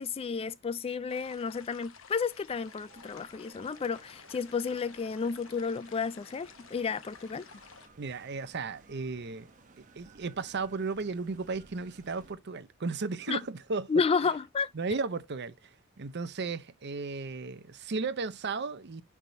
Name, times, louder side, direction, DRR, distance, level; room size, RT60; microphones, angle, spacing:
voice 1, 0.0-7.5 13.3-13.4 13.9-14.7, left 5 dB, 30° left, 0.3 m, -31 dB
sound 1, 1.1-7.9, left 6 dB, 70° left, 0.9 m, -53 dB
sound 2, 2.5-12.3, right 3 dB, 40° right, 1.0 m, -58 dB
voice 2, 8.0-9.5 10.0-13.9 14.7-15.5 16.0-19.0, right 4 dB, 55° right, 0.7 m, -35 dB
10.5 x 3.5 x 2.7 m
head